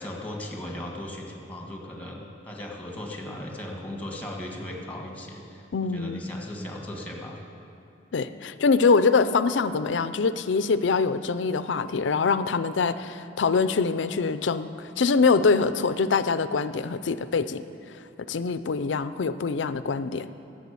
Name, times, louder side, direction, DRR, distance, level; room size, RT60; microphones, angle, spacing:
voice 1, 0.0-7.4, left 1 dB, 10° left, 0 dB, 1.6 m, -37 dB
voice 2, 5.7-6.2 8.1-17.6 18.3-20.3, left 4 dB, 70° left, 13 dB, 0.5 m, -24 dB
11.5 x 7.5 x 8.4 m, 2.6 s
head